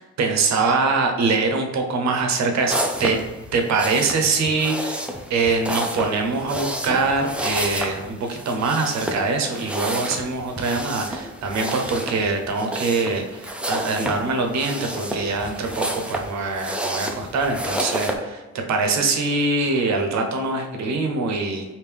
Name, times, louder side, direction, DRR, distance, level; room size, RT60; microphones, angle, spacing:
voice 1, 0.0-3.2 3.5-18.4 18.7-21.6, right 3 dB, 65° right, 3 dB, 0.7 m, -23 dB
sound 1, 2.7-18.2, right 1 dB, 5° right, 0.4 m, -30 dB
3.4 x 2.6 x 3.4 m, 1.2 s
cardioid pair, 90°, 30 cm